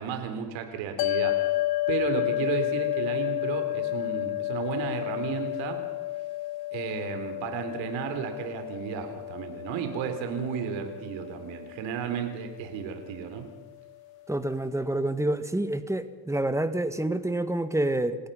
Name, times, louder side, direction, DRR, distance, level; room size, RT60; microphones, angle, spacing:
voice 1, 0.0-1.4 1.9-5.8 6.7-13.5, right 8 dB, 70° right, 6 dB, 3.9 m, -33 dB
sound 1, 1.0-13.5, left 16 dB, 50° left, 0.8 m, -31 dB
voice 2, 14.3-18.2, right 1 dB, 5° right, 11 dB, 1.9 m, -28 dB
29.0 x 16.5 x 5.7 m, 1.3 s
hypercardioid pair, 60°, 47 cm